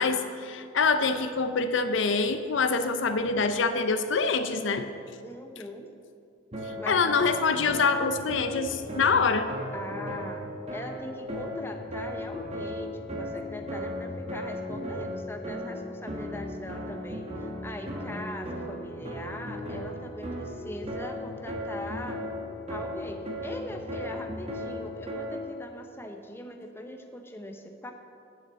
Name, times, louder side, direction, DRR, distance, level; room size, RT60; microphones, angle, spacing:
voice 1, 0.0-4.9 6.9-9.5, left 4 dB, 65° left, 9 dB, 0.6 m, -25 dB
voice 2, 5.2-5.9 6.8-7.1 9.7-10.4 10.7-22.2 22.7-27.9, left 1 dB, 10° left, 4 dB, 0.7 m, -41 dB
sound 1, 6.5-25.6, equal, 35° right, 1.6 m, -36 dB
8.2 x 7.3 x 7.4 m, 2.5 s
head